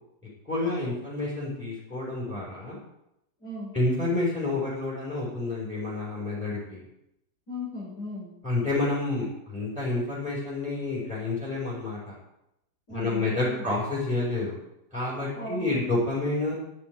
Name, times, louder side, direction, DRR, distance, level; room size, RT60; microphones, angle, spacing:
voice 1, 0.5-2.8 3.7-6.8 8.4-12.1 12.9-14.5 14.9-16.5, left 2 dB, 5° left, -7 dB, 6.4 m, -29 dB
voice 2, 3.4-3.7 7.5-8.3 12.9-13.6 15.3-15.8, left 1 dB, 90° left, -9 dB, 7.1 m, -37 dB
11.5 x 8.8 x 9.7 m, 0.83 s
omnidirectional pair, 1.7 m